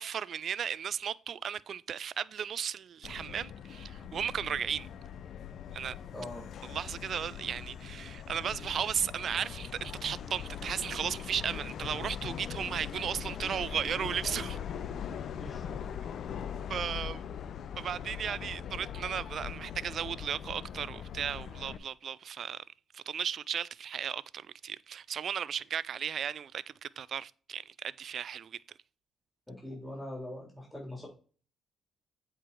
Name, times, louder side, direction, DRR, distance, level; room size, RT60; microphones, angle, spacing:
voice 1, 0.0-4.9 5.7-6.0 6.7-14.6 16.7-17.2 17.8-22.6 22.9-28.6, right 8 dB, 60° right, 0.3 m, -35 dB
Subway metro underground, 3.0-21.8, left 8 dB, 65° left, 0.6 m, -41 dB
voice 2, 6.1-6.4 15.4-15.8 29.5-31.1, left 1 dB, 5° left, 3.7 m, -42 dB
8.2 x 4.7 x 4.5 m
cardioid pair, 90°, 0 cm